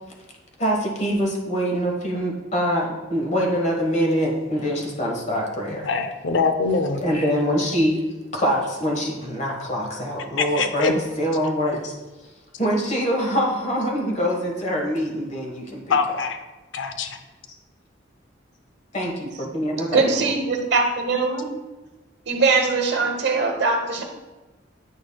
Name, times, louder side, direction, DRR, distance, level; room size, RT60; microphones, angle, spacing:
voice 1, 0.6-5.9 6.9-8.0 8.3-11.9 12.6-16.0 18.9-20.1, equal, 40° left, 0 dB, 1.4 m, -24 dB
voice 2, 5.8-7.0 10.4-10.9 15.9-16.4 16.7-17.1, left 4 dB, 75° left, 7 dB, 0.5 m, -23 dB
voice 3, 19.9-21.5 22.3-24.0, right 4 dB, 65° right, 3 dB, 1.0 m, -21 dB
9.0 x 6.2 x 2.3 m, 1.2 s
head